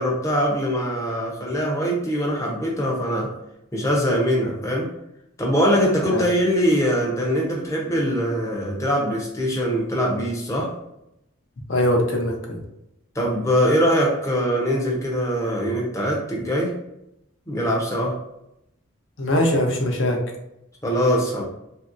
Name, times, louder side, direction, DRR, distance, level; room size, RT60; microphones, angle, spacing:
voice 1, 0.0-3.3 3.7-4.9 5.4-10.7 13.1-16.8 17.5-18.2 20.8-21.4, equal, 15° left, -2 dB, 0.6 m, -22 dB
voice 2, 11.7-12.6 19.2-20.2, left 1 dB, 60° left, 1 dB, 0.7 m, -21 dB
3.0 x 2.7 x 2.5 m, 0.84 s
head